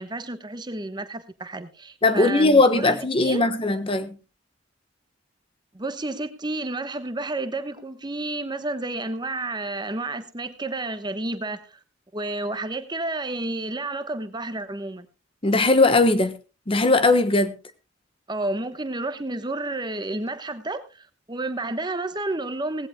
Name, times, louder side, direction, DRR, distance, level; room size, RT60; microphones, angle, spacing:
voice 1, 0.0-3.5 5.7-11.8 12.1-15.1 18.3-22.9, right 2 dB, 25° right, 1.1 m, -31 dB
voice 2, 2.0-4.2 15.4-16.3 16.7-17.5, left 2 dB, 30° left, 1.2 m, -19 dB
18.0 x 16.5 x 2.2 m
head